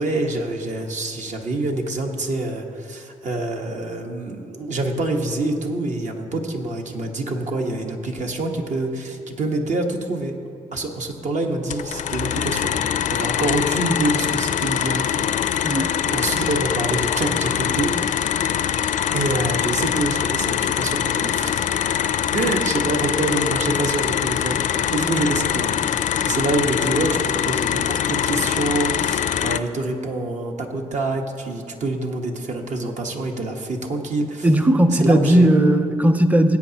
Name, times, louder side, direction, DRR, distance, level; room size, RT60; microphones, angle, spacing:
voice 1, 0.0-10.4 10.7-15.8 16.1-18.0 19.1-21.6 22.3-26.0 26.2-34.5 35.0-35.5, right 2 dB, 60° right, 2 dB, 1.3 m, -26 dB
sound 1, 11.7-29.6, left 9 dB, 65° left, 0.4 m, -23 dB
voice 2, 15.6-16.0 34.4-36.6, right 1 dB, 10° right, 9 dB, 0.7 m, -17 dB
19.5 x 8.5 x 2.9 m, 2.4 s
cardioid pair, 85°, 14 cm